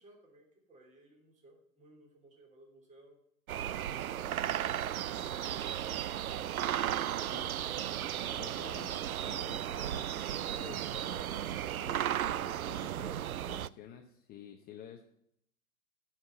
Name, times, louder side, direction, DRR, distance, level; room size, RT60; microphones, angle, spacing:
voice 1, 0.0-3.2, right 1 dB, 15° right, 0 dB, 3.1 m, -59 dB
sound 1, 3.5-13.7, right 11 dB, 85° right, 0.5 m, -35 dB
voice 2, 8.3-15.0, left 9 dB, 20° left, 4 dB, 0.9 m, -51 dB
11.0 x 6.0 x 7.7 m, 0.72 s
figure-of-eight pair, 110°, 41 cm